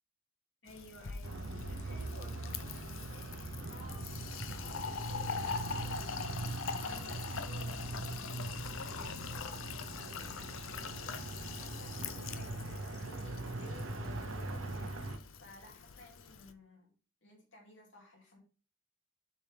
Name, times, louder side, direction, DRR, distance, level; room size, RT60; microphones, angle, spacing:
voice 1, 0.6-6.5 6.8-16.9 17.2-18.4, left 1 dB, 65° left, 0 dB, 2.7 m, -56 dB
Fill (with liquid), 0.7-16.5, left 6 dB, 85° left, 0.6 m, -43 dB
sound 1, 1.2-15.2, right 2 dB, 90° right, 0.9 m, -41 dB
7.2 x 5.3 x 3.5 m, 0.37 s
head